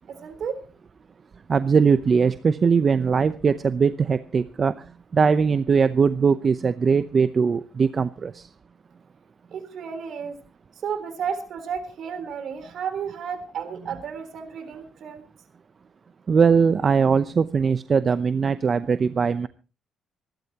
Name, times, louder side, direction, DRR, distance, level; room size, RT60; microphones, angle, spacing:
voice 1, 0.1-0.6 9.5-10.4 10.8-15.2, right 7 dB, 65° right, 10 dB, 3.6 m, -32 dB
voice 2, 1.5-4.7 5.1-8.5 16.3-19.5, right 5 dB, 40° right, 13 dB, 0.7 m, -20 dB
25.5 x 11.5 x 2.9 m, 0.34 s
cardioid pair, 90°, 0 cm